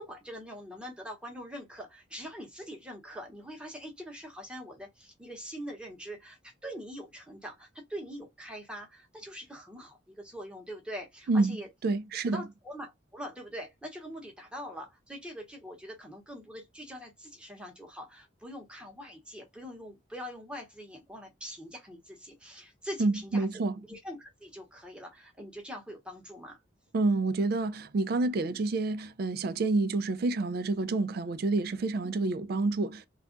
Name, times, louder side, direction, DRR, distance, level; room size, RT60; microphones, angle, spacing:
voice 1, 0.0-11.7 12.3-23.5 23.9-26.6 32.0-32.1, equal, 5° right, 0.9 m, -43 dB
voice 2, 11.8-12.5 23.0-23.8 26.9-33.1, right 3 dB, 55° right, 0.3 m, -28 dB
2.4 x 2.1 x 3.7 m
head